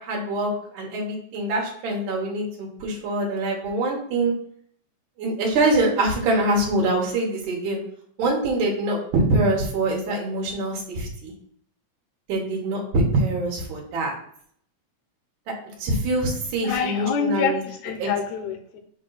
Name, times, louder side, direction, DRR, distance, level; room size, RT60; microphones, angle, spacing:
voice 1, 0.0-4.3 5.2-7.8 8.2-11.3 12.3-14.1 15.8-17.6 18.0-18.1, right 2 dB, 85° right, -2 dB, 3.0 m, -24 dB
voice 2, 16.6-18.8, left 6 dB, 75° left, 6 dB, 2.0 m, -26 dB
7.6 x 2.7 x 5.7 m, 0.64 s
omnidirectional pair, 3.4 m